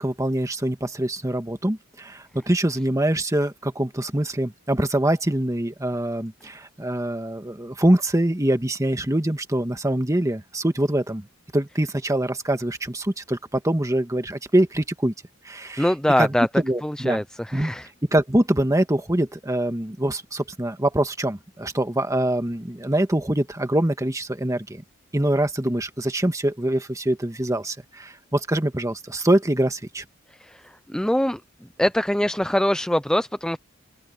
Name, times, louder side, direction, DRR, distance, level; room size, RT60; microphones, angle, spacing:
voice 1, 0.0-11.3 11.5-15.1 15.4-15.9 16.2-17.2 17.5-17.7 18.0-24.8 25.1-30.0, right 1 dB, 15° right, 1.5 m, -24 dB
voice 2, 15.8-16.5 16.8-17.9 30.4-30.6 30.9-31.4 31.8-33.6, left 1 dB, 5° left, 0.5 m, -23 dB
open air
head